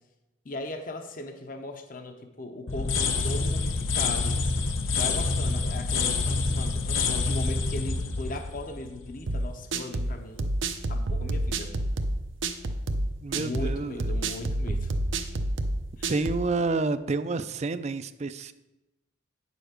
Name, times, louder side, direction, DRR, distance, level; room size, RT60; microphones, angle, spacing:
voice 1, 0.4-4.4 4.9-10.5 10.9-11.7 13.4-14.9 16.0-16.2, left 2 dB, 45° left, 6 dB, 0.7 m, -38 dB
sound 1, 2.7-9.5, left 3 dB, 90° left, 0.9 m, -27 dB
sound 2, 9.3-16.5, right 1 dB, 75° right, 0.7 m, -29 dB
voice 2, 13.2-14.0 16.1-18.5, right 3 dB, 35° right, 13 dB, 0.4 m, -29 dB
9.1 x 6.9 x 5.1 m, 1.0 s
head